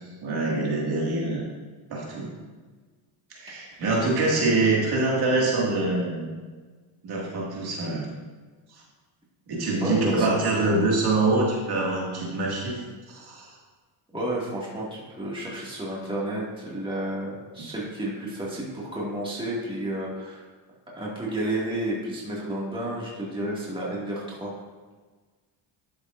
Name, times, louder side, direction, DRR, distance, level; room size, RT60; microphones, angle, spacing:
voice 1, 0.2-1.4 1.9-2.3 3.3-6.3 7.0-8.1 9.5-12.8 13.1-13.5, right 2 dB, 50° right, -3 dB, 2.2 m, -25 dB
voice 2, 9.8-10.3 14.1-20.5 20.9-24.6, right 1 dB, 10° right, -5 dB, 2.2 m, -31 dB
11.5 x 7.0 x 2.6 m, 1.4 s
cardioid pair, 110°, 49 cm